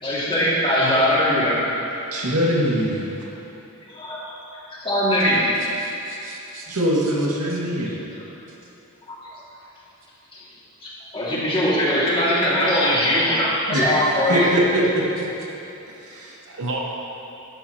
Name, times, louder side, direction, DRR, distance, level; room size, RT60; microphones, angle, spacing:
voice 1, 0.0-1.7 3.9-4.3 4.8-5.5 10.3-10.4 11.1-14.5, equal, 25° left, -7 dB, 2.3 m, -20 dB
voice 2, 2.1-3.1 6.7-8.0 13.7-13.8 14.3-15.0 16.1-16.3, equal, 85° right, -4 dB, 2.0 m, -22 dB
voice 3, 5.8-7.1 7.5-7.6 16.4-16.8, right 3 dB, 60° right, -1 dB, 0.9 m, -35 dB
12.0 x 11.0 x 2.9 m, 3.0 s
head